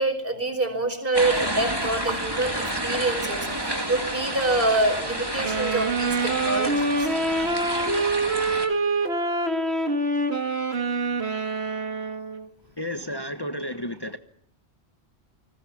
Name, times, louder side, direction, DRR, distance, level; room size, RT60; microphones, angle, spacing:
voice 1, 0.0-7.1, right 2 dB, 55° right, 5.3 m, -26 dB
sound 1, 1.1-8.7, right 1 dB, 20° right, 2.8 m, -30 dB
sound 2, 5.4-12.5, right 2 dB, 70° right, 2.3 m, -25 dB
voice 2, 12.8-14.2, left 1 dB, 20° left, 1.3 m, -32 dB
29.0 x 20.5 x 7.2 m
omnidirectional pair, 1.1 m